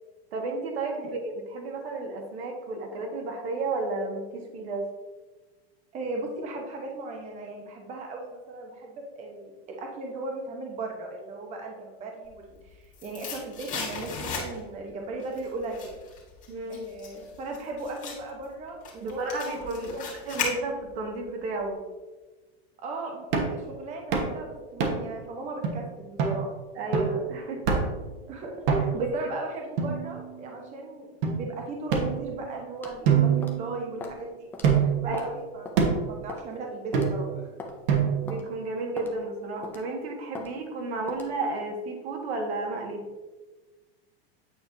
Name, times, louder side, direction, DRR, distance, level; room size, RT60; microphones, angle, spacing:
voice 1, 0.3-1.2 1.5-4.8 16.5-16.8 19.0-20.0 20.3-21.8 26.8-27.6 29.0-29.1 35.0-35.2 38.2-43.0, right 3 dB, 80° right, 2 dB, 1.6 m, -32 dB
voice 2, 5.9-16.0 16.7-20.1 22.8-26.5 28.3-37.5, right 2 dB, 20° right, 1 dB, 0.8 m, -37 dB
sound 1, 12.4-14.8 15.2-21.1 21.4-21.5, left 5 dB, 25° left, 1.6 m, -36 dB
sound 2, 23.3-23.6 24.1-24.4 24.8-25.2 25.6-25.7 26.2-26.4 26.9-27.2 27.7-28.0 28.7-29.1 29.8-30.5 31.2-31.3 31.9-32.6 33.1-34.1 34.6-35.1 35.8-36.1 36.9-37.4 37.9-38.4, right 6 dB, 60° right, 1.2 m, -25 dB
sound 3, 32.8-33.0 33.4-33.6 34.0-34.2 34.5-34.7 35.1-35.4 35.6-35.8 36.3-36.5 36.9-37.1 37.6-37.8 38.3-38.4 39.0-39.1 39.6-39.9 40.3-40.5 41.1-41.3, left 3 dB, 5° left, 0.3 m, -39 dB
8.5 x 4.6 x 2.6 m, 1.2 s
supercardioid pair, 150°, 31 cm